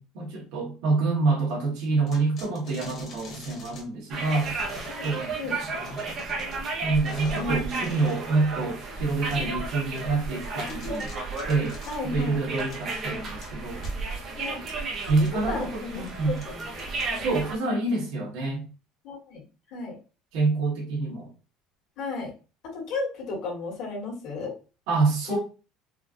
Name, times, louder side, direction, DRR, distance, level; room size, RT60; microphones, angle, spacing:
voice 1, 0.0-4.5 5.0-6.0 6.8-11.1 11.5-11.8 12.0-13.9 15.1-16.4 17.2-18.6 20.3-21.3 24.9-25.4, right 3 dB, 70° right, 1.6 m, -27 dB
sound 1, 2.1-3.8 4.4-5.3 5.8-6.7 7.0-8.3 8.6-8.7 9.3-9.4 10.0-10.1 10.4-11.9 12.5-13.0 13.4-13.5 13.8-13.9 14.7-15.3 15.9-16.1 16.4-17.4, left 2 dB, 30° left, 1.4 m, -44 dB
sound 2, 4.1-17.6, right 3 dB, 35° right, 0.8 m, -33 dB
voice 2, 7.3-8.2 10.5-11.0 11.9-12.4 14.3-14.7 15.1-17.2 19.0-19.4 19.7-20.0 22.0-22.3 22.6-24.5 25.3-25.4, left 3 dB, 55° left, 1.9 m, -34 dB
4.3 x 2.4 x 2.5 m
cardioid pair, 170°, 0 cm